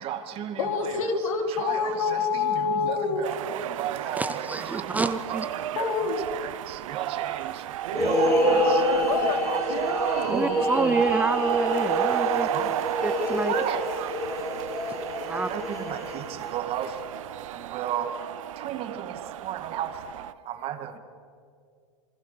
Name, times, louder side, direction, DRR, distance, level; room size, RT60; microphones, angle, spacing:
voice 1, 0.0-0.9 1.6-1.9 2.3-5.5 5.7-5.8 6.4-8.9 9.3-9.9 10.3-11.0 12.2-13.0 13.5-21.0, right 10 dB, 35° right, 2.1 m, -35 dB
voice 2, 0.6-3.2 5.7-6.3 9.1-9.6, left 5 dB, 80° left, 4.0 m, -27 dB
sound 1, 3.2-20.3, right 13 dB, 75° right, 0.8 m, -32 dB
voice 3, 4.1-5.5 10.3-12.5 13.0-13.6 15.3-15.5, right 3 dB, 10° right, 0.7 m, -28 dB
sound 2, 7.9-16.5, left 1 dB, 15° left, 4.8 m, -27 dB
27.0 x 25.0 x 6.8 m
supercardioid pair, 145°, 17 cm